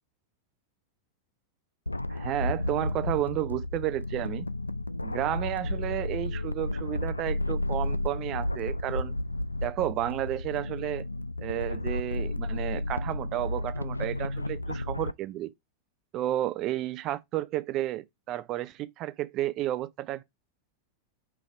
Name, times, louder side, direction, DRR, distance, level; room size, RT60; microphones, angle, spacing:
sound 1, 1.9-15.1, left 1 dB, 85° left, 0.3 m, -32 dB
voice 1, 2.1-4.5 5.0-9.2 9.6-11.1 11.4-15.5 16.1-20.2, right 14 dB, 35° right, 0.5 m, -32 dB
4.8 x 4.0 x 5.8 m
figure-of-eight pair, 90°, 0 cm